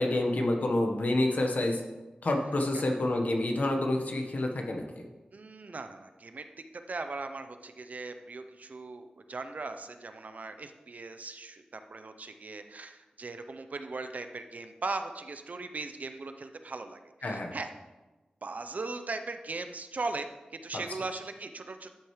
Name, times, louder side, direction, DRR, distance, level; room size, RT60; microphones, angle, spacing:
voice 1, 0.0-1.8 2.2-5.1 17.2-17.5, left 1 dB, 65° left, 3 dB, 1.2 m, -28 dB
voice 2, 5.3-6.5 6.7-17.7 18.4-20.3 20.6-21.9, right 3 dB, 60° right, 8 dB, 0.7 m, -39 dB
11.5 x 6.5 x 3.2 m, 1.2 s
wide cardioid pair, 60°, 3 cm